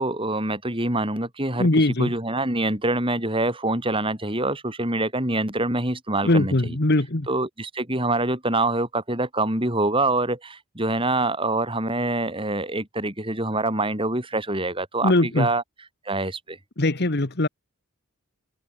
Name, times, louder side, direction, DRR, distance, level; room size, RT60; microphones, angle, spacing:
voice 1, 0.0-1.7 2.0-6.8 7.3-15.6 16.1-16.6, right 2 dB, 25° right, 7.0 m, -25 dB
voice 2, 1.6-2.1 6.2-7.3 15.0-15.5 16.8-17.5, left 2 dB, 50° left, 1.5 m, -21 dB
open air
head